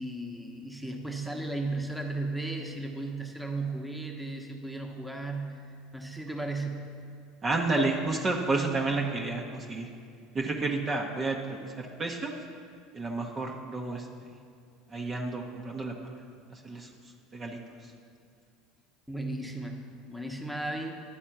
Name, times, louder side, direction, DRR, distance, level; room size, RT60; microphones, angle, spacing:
voice 1, 0.0-6.9 19.1-19.8 20.1-21.0, right 2 dB, ahead, 1 dB, 1.0 m, -35 dB
voice 2, 7.4-9.9 10.3-12.3 12.9-14.1 14.9-15.9 16.5-16.9 17.3-17.6, right 3 dB, 30° right, 0 dB, 0.8 m, -30 dB
10.0 x 4.2 x 5.8 m, 2.3 s
hypercardioid pair, 75°, 0 cm